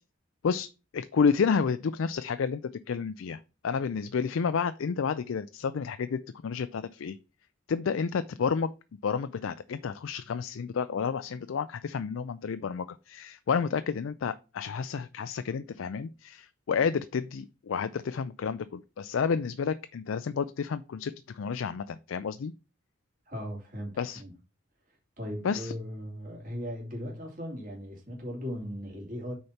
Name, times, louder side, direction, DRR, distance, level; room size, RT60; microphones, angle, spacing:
voice 1, 0.4-7.2 7.7-8.7 9.0-22.5 24.0-24.2 25.4-25.7, left 6 dB, 75° left, 0.4 m, -30 dB
voice 2, 23.3-24.3 25.2-29.3, equal, 40° right, 2.8 m, -38 dB
6.4 x 4.3 x 5.7 m
head